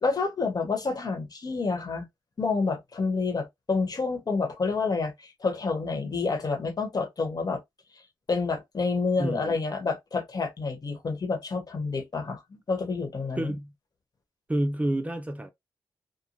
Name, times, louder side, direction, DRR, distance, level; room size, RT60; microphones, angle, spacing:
voice 1, 0.0-2.1 2.4-7.6 8.3-13.5, left 4 dB, 45° left, 1.1 m, -28 dB
voice 2, 9.2-9.6 13.4-13.7 14.5-15.5, right 1 dB, 15° right, 0.4 m, -29 dB
3.0 x 2.2 x 2.6 m
cardioid pair, 60°, 9 cm